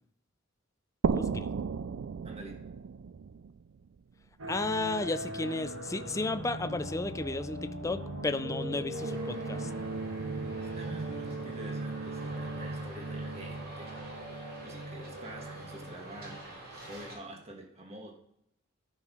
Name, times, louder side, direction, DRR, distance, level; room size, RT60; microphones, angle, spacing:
sound 1, 1.0-4.5, right 5 dB, 65° right, 0.4 m, -34 dB
voice 1, 1.1-1.5 4.5-9.7, left 2 dB, 15° left, 11 dB, 0.4 m, -33 dB
voice 2, 2.2-2.6 10.6-14.0 14.3-18.1, right 1 dB, 30° right, 0 dB, 1.7 m, -47 dB
sound 2, 4.4-16.5, right 2 dB, 90° right, 1.8 m, -39 dB
Traffic noise roadway noise, 8.9-17.1, right 1 dB, 50° right, 3.4 m, -46 dB
13.0 x 4.7 x 5.6 m, 0.77 s
head